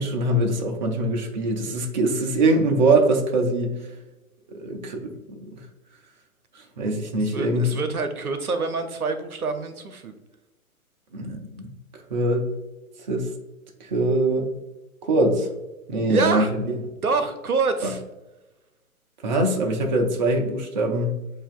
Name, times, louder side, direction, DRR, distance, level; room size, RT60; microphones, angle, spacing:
voice 1, 0.0-3.9 4.5-5.5 6.8-7.8 11.1-11.7 12.1-12.5 13.1-13.3 13.8-14.5 15.0-15.5 15.9-16.8 17.8-17.9 19.2-21.2, right 2 dB, 35° right, 2 dB, 0.5 m, -23 dB
voice 2, 7.2-10.1 16.1-16.5 17.0-18.0, right 4 dB, 80° right, 8 dB, 0.7 m, -26 dB
7.6 x 2.6 x 2.4 m, 1.1 s
figure-of-eight pair, 125°, 43 cm